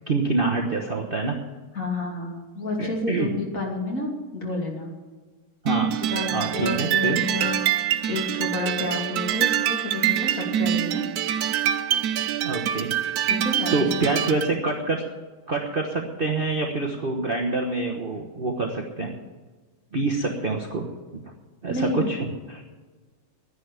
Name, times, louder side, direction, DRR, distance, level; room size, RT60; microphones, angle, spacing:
voice 1, 0.1-1.4 2.8-3.3 5.6-6.0 6.3-7.2 12.4-12.9 13.7-15.0 15.5-19.2 19.9-20.8 21.1-21.3 21.6-22.6, right 3 dB, 35° right, 0 dB, 1.0 m, -26 dB
voice 2, 1.7-4.9 6.1-7.6 8.1-11.1 13.3-13.9 21.7-22.0, left 2 dB, 40° left, -1 dB, 3.2 m, -30 dB
sound 1, 5.7-14.5, right 11 dB, 85° right, 0.8 m, -25 dB
11.0 x 10.5 x 8.2 m, 1.3 s
omnidirectional pair, 2.3 m